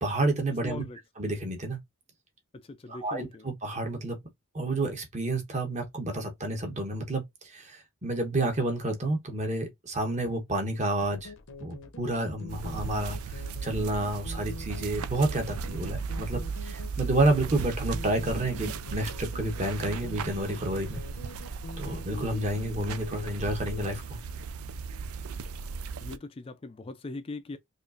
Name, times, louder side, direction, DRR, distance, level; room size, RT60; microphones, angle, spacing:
voice 1, 0.0-0.8 1.2-1.8 2.9-4.2 4.5-7.2 7.5-11.3 11.6-21.0 21.8-24.2, right 2 dB, 35° right, 1.0 m, -30 dB
voice 2, 0.6-1.0 2.5-3.5 26.0-27.6, left 2 dB, 25° left, 0.3 m, -40 dB
sound 1, 11.0-23.9, left 3 dB, 60° left, 0.7 m, -45 dB
sound 2, 12.5-26.2, right 5 dB, 80° right, 0.4 m, -36 dB
5.0 x 2.5 x 2.5 m
head